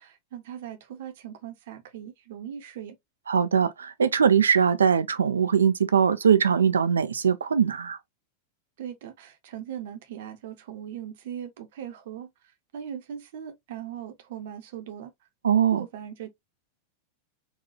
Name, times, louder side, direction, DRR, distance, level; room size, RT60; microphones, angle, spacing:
voice 1, 0.0-3.0 8.8-12.3 12.7-15.1 15.7-16.3, right 9 dB, 55° right, 0.7 m, -39 dB
voice 2, 3.3-8.0 15.4-15.8, right 7 dB, 70° right, 0.3 m, -21 dB
4.1 x 2.3 x 2.8 m
figure-of-eight pair, 90°, 0 cm